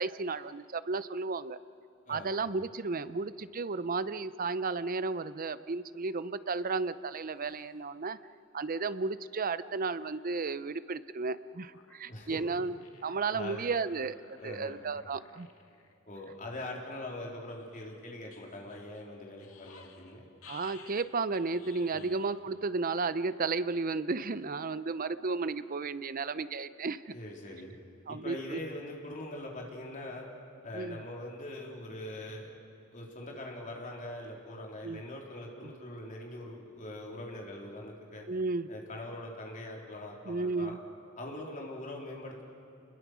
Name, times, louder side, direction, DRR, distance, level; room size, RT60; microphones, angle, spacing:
voice 1, 0.0-1.6 2.1-8.2 8.5-15.5 20.5-27.1 28.1-28.6 30.7-31.0 34.8-35.0 35.6-35.7 38.3-38.7 40.3-40.8, right 4 dB, 45° right, 15 dB, 0.6 m, -33 dB
sound 1, 6.5-6.8 7.3-7.9 8.7-8.8 9.0-9.1 9.6-9.7 10.0-10.6 11.3-12.0 12.8-13.6 14.0-15.9 16.4-16.5 17.5-20.1 20.4-22.4 22.8-22.9, left 6 dB, 85° left, 2.1 m, -57 dB
voice 2, 12.1-12.4 13.3-13.7 14.4-14.8 16.1-20.2 21.9-22.1 27.1-27.7 28.1-30.3 30.6-32.5 32.9-38.3 38.7-40.8 41.2-42.4, left 1 dB, 40° left, -1 dB, 3.8 m, -42 dB
28.5 x 21.5 x 6.2 m, 2.8 s
head